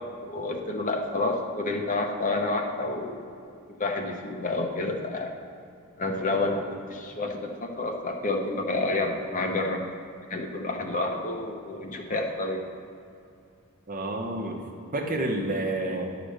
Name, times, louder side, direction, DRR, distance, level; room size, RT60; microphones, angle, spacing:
voice 1, 0.2-3.2 3.8-5.4 6.0-9.8 10.3-12.6, left 2 dB, 40° left, 2 dB, 0.9 m, -29 dB
voice 2, 13.9-14.7 14.9-16.1, right 2 dB, 40° right, 1 dB, 1.0 m, -29 dB
10.5 x 5.1 x 6.5 m, 2.5 s
head